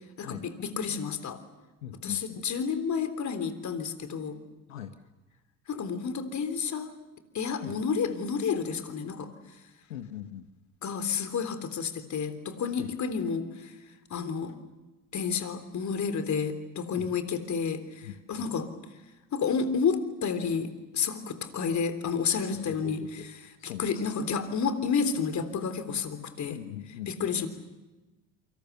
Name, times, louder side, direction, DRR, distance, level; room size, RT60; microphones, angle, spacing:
voice 1, 0.2-1.4 2.0-4.4 5.7-6.9 7.3-9.3 10.8-13.7 14.1-14.6 15.1-18.7 19.3-26.6 27.1-27.5, left 6 dB, 45° left, 10 dB, 3.6 m, -30 dB
voice 2, 1.8-2.4 4.7-4.9 7.6-7.7 9.9-10.5 12.8-12.9 17.0-17.1 18.0-18.5 22.5-23.3 23.6-24.0 26.5-27.3, left 11 dB, 85° left, 8 dB, 1.3 m, -41 dB
28.5 x 25.5 x 7.0 m, 1.1 s
hypercardioid pair, 60°, 39 cm